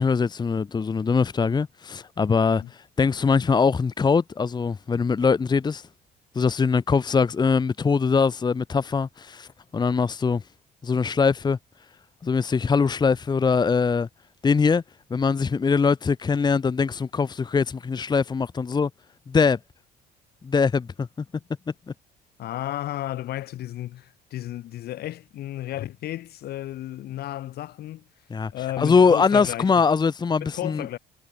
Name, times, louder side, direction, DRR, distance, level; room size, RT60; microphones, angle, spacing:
voice 1, 0.0-5.9 6.3-9.5 9.7-10.4 10.8-11.6 12.2-14.1 14.4-14.8 15.1-18.9 19.3-19.6 20.4-21.1 28.3-28.5 28.8-30.9, left 5 dB, 25° left, 1.1 m, -22 dB
voice 2, 22.4-28.0 28.5-29.7 30.4-31.0, left 14 dB, 70° left, 4.2 m, -33 dB
cardioid pair, 110°, 17 cm